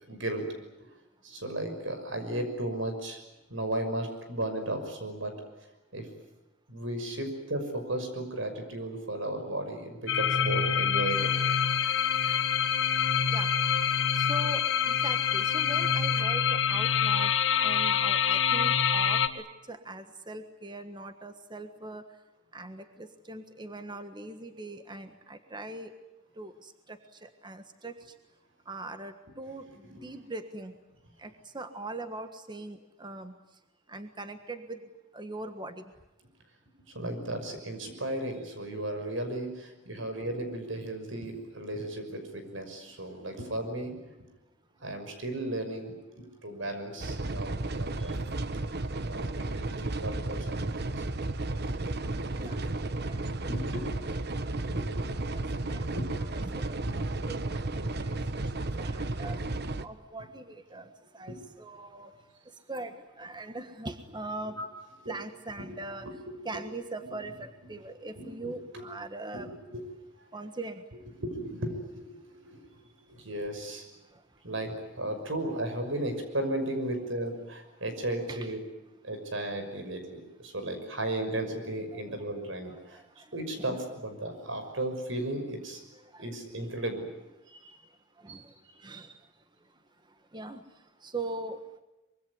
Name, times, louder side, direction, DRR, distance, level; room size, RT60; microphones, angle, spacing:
voice 1, 0.1-0.4 1.2-3.2 3.5-5.3 5.9-6.1 6.7-11.4 29.8-30.1 36.9-44.0 44.8-48.2 49.1-51.3 51.6-52.0 52.3-52.8 53.1-54.0 54.7-55.0 55.9-56.0 56.9-57.3 61.3-61.4 64.6-64.7 65.6-66.4 68.2-68.8 69.3-69.8 71.2-72.7 73.1-73.9 74.4-78.6 79.0-83.0 83.3-85.8 86.2-87.1 87.5-87.8 88.3-88.4, right 1 dB, 90° right, 7 dB, 6.0 m, -35 dB
sound 1, 10.1-19.3, left 7 dB, 80° left, 1.5 m, -26 dB
sound 2, 11.1-16.2, left 1 dB, 5° left, 2.7 m, -48 dB
voice 2, 14.2-17.3 17.6-22.0 22.5-25.9 26.4-26.5 27.2-27.9 28.7-29.6 30.0-30.7 31.2-33.3 33.9-34.8 35.1-35.8 52.4-52.6 53.1-53.2 55.0-55.4 55.7-55.8 56.1-56.8 57.3-57.4 57.8-58.1 58.5-59.4 59.8-62.1 62.7-64.6 65.1-66.1 66.4-69.5 70.3-70.8 78.3-78.4 82.1-82.2 83.6-83.8 86.1-86.2 86.6-86.7 88.2-88.4 88.8-89.1 90.3-90.6 91.0-91.6, right 2 dB, 25° right, 8 dB, 1.5 m, -41 dB
sound 3, 47.0-59.9, right 2 dB, 55° right, 1.2 m, -33 dB
25.0 x 23.0 x 9.6 m, 0.99 s
head